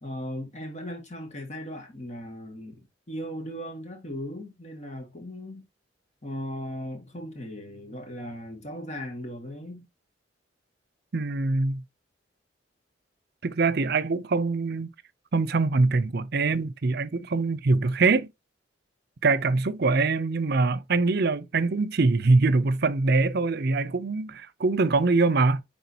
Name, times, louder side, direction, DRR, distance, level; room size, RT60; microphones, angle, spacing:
voice 1, 0.0-5.7 6.2-9.9, equal, 40° left, 1.9 m, -37 dB
voice 2, 11.1-11.8 13.4-14.9 15.3-18.3 19.2-25.6, right 3 dB, 60° right, 0.6 m, -23 dB
10.0 x 3.7 x 2.8 m
head